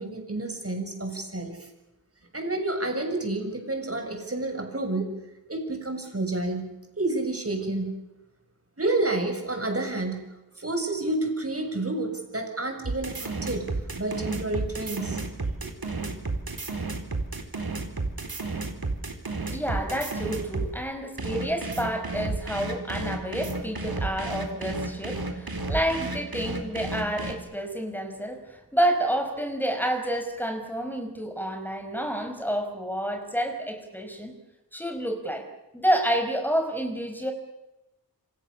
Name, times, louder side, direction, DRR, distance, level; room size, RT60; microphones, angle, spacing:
voice 1, 0.0-1.6 2.3-5.1 5.5-8.0 8.8-10.2 10.6-13.7 14.0-15.2 15.6-15.7 16.0-16.1, right 2 dB, 40° right, 4 dB, 7.1 m, -29 dB
sound 1, 12.8-20.7 21.2-27.3, right 3 dB, 70° right, 4.2 m, -32 dB
voice 2, 19.5-34.3 34.7-35.5 35.7-37.3, right 1 dB, 5° left, 5 dB, 5.0 m, -29 dB
28.0 x 26.5 x 7.1 m, 0.98 s
wide cardioid pair, 70°, 37 cm